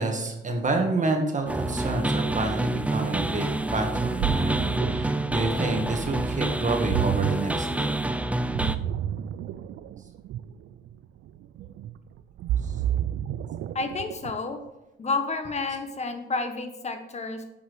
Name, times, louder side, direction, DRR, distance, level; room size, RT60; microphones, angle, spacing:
voice 1, 0.0-7.9, right 3 dB, 40° right, 3 dB, 1.8 m, -29 dB
sound 1, 1.5-8.8, right 2 dB, 5° right, 0.5 m, -27 dB
Ocean, 3.9-14.5, right 11 dB, 75° right, 0.5 m, -31 dB
voice 2, 13.7-14.6 15.0-17.4, left 3 dB, 35° left, 6 dB, 1.4 m, -30 dB
7.9 x 5.9 x 6.2 m, 0.97 s
cardioid pair, 90°, 20 cm